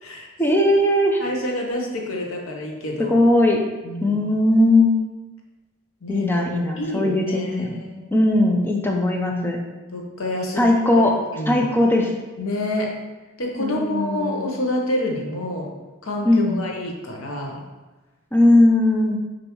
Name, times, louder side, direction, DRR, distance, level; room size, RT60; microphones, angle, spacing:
voice 1, 0.4-1.2 3.1-3.6 4.0-4.9 6.1-7.8 8.1-9.6 10.6-11.1 11.5-12.1 13.6-14.4 16.2-16.6 18.3-19.2, left 1 dB, 10° left, 1 dB, 0.4 m, -18 dB
voice 2, 1.2-3.2 3.8-4.2 6.0-6.5 6.8-7.9 9.9-10.6 10.9-11.0 11.3-11.6 12.4-12.9 13.4-15.7 16.0-17.6, left 1 dB, 85° left, 0 dB, 0.8 m, -28 dB
6.5 x 2.6 x 3.0 m, 1.2 s
head